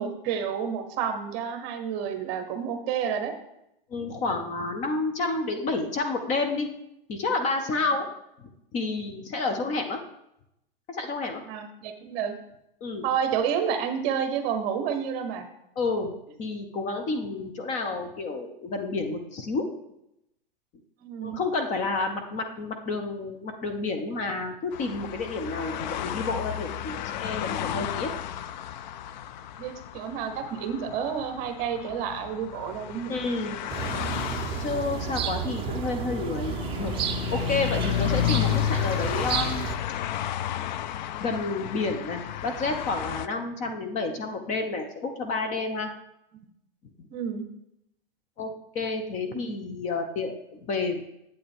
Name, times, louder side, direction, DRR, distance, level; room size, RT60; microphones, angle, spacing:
voice 1, 0.0-3.3 11.5-12.3 13.0-15.5 21.0-21.4 29.6-33.1 47.1-47.4 49.3-49.4, right 7 dB, 35° right, 7 dB, 1.1 m, -30 dB
voice 2, 3.9-6.7 7.1-8.1 8.7-10.0 10.9-11.4 12.8-13.0 15.8-16.1 16.4-19.7 21.2-28.1 33.1-33.6 34.6-36.9 37.3-39.7 41.2-45.9 48.4-51.0, left 3 dB, 25° left, 5 dB, 0.8 m, -30 dB
sound 1, 24.7-43.3, left 12 dB, 50° left, 0.4 m, -32 dB
sound 2, 33.7-39.8, right 8 dB, 20° right, 0.7 m, -32 dB
8.5 x 8.0 x 3.6 m, 0.81 s
hypercardioid pair, 135°, 29 cm